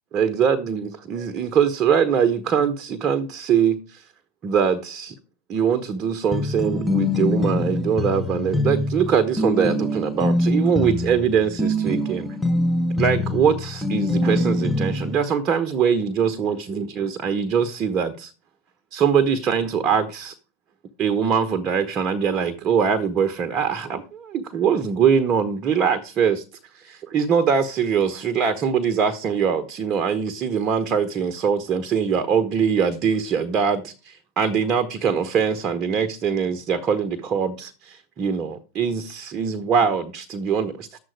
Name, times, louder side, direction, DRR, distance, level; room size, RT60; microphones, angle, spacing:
voice 1, 0.1-4.0 4.4-5.1 5.5-12.4 12.9-18.3 18.9-20.3 21.0-26.4 26.7-41.0, right 7 dB, 30° right, 1.1 m, -22 dB
sound 1, 6.3-15.2, left 1 dB, 5° left, 1.2 m, -24 dB
11.5 x 7.7 x 4.8 m
figure-of-eight pair, 90°, 0 cm